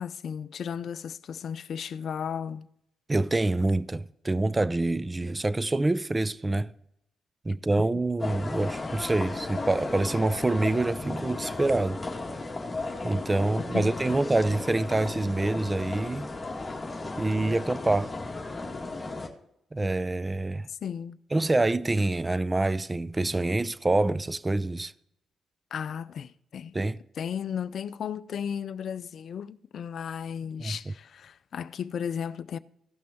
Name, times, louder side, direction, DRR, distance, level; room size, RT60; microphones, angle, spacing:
voice 1, 0.0-2.7 7.8-7.9 13.7-14.2 20.7-21.2 25.7-26.8 27.2-32.6, left 8 dB, 65° left, 0.4 m, -35 dB
voice 2, 3.1-6.7 7.4-12.0 13.0-16.3 17.2-18.1 19.7-20.7 21.3-24.9 26.7-27.0 30.6-30.9, right 2 dB, 25° right, 0.5 m, -26 dB
sound 1, 8.2-19.3, left 3 dB, 25° left, 1.8 m, -35 dB
15.5 x 6.0 x 4.3 m
hypercardioid pair, 45°, 0 cm